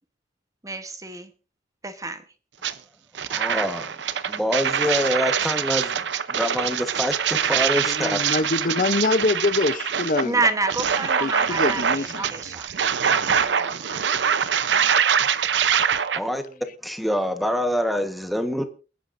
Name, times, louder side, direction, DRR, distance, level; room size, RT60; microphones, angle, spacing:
voice 1, 0.6-1.3 1.8-2.2 10.2-12.7 13.1-14.1, right 3 dB, 20° right, 1.1 m, -29 dB
sound 1, 2.6-2.7 3.1-16.2, right 7 dB, 85° right, 0.7 m, -24 dB
voice 2, 3.3-4.0 4.2-6.0 6.3-8.2 16.1-18.6, equal, ahead, 1.2 m, -26 dB
voice 3, 7.8-10.4 11.2-12.2 14.7-14.9, left 3 dB, 50° left, 0.6 m, -24 dB
28.0 x 10.0 x 2.6 m
head